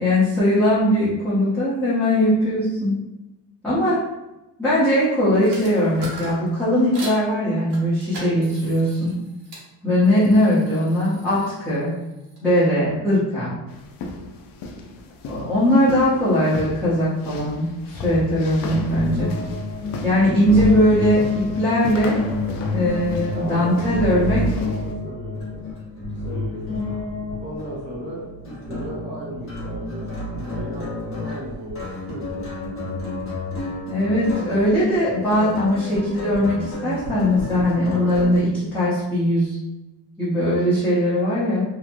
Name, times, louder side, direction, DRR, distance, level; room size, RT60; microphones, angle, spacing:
voice 1, 0.0-2.9 3.6-4.0 4.6-9.2 9.8-11.9 12.4-13.5 15.3-19.3 20.0-22.2 22.7-24.4 33.9-39.6 40.2-41.6, left 1 dB, 5° left, -13 dB, 0.8 m, -20 dB
sound 1, 5.4-7.2 7.7-9.7 10.0-12.7, right 1 dB, 75° right, 1.0 m, -40 dB
sound 2, 13.7-24.9, left 3 dB, 60° left, 0.5 m, -36 dB
sound 3, 18.6-38.4, left 1 dB, 35° left, 1.1 m, -30 dB
voice 2, 23.3-25.7 26.2-26.8 27.4-32.5, equal, 25° right, -6 dB, 1.0 m, -36 dB
3.0 x 2.1 x 2.5 m, 0.99 s
cardioid pair, 130°, 40 cm